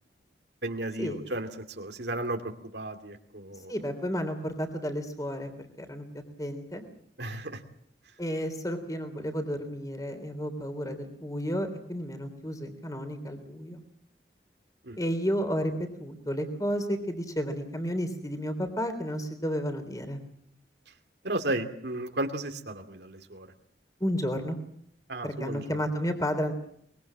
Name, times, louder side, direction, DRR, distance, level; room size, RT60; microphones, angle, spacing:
voice 1, 0.6-1.5 1.8-2.4 2.7-3.7 7.2-7.6 14.8-15.0 21.2-23.5 25.1-25.8, right 1 dB, 75° right, 5 dB, 2.5 m, -34 dB
voice 2, 3.7-6.0 6.4-6.8 8.2-13.8 15.0-20.2 24.0-24.6 25.2-26.5, equal, 20° left, 7 dB, 3.4 m, -32 dB
24.0 x 22.0 x 7.4 m, 0.69 s
head